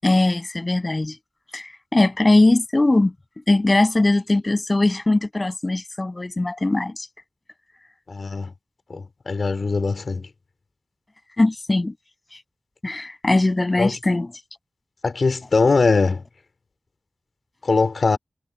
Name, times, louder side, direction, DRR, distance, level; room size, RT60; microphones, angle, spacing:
voice 1, 0.0-1.2 1.5-3.1 3.5-7.1 11.4-11.9 12.8-14.3, left 2 dB, 35° left, 7.7 m, -20 dB
voice 2, 8.1-8.5 8.9-10.3 13.8-13.9 15.0-16.2 17.6-18.2, left 4 dB, 75° left, 3.8 m, -21 dB
wide cardioid pair, 75°, 0 cm